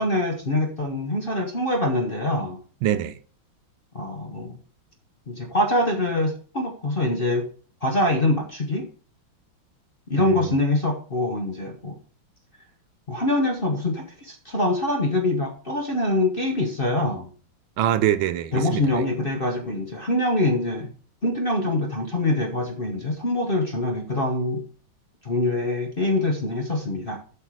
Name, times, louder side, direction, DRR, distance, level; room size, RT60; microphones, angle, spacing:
voice 1, 0.0-2.6 3.9-4.6 5.3-7.5 7.8-8.9 10.1-12.0 13.1-17.3 18.5-20.9 21.2-24.6 25.2-27.2, left 1 dB, 35° left, 0.9 m, -24 dB
voice 2, 2.8-3.2 10.2-10.6 17.8-19.0, right 11 dB, 80° right, 1.4 m, -24 dB
7.9 x 6.0 x 4.7 m
omnidirectional pair, 2.2 m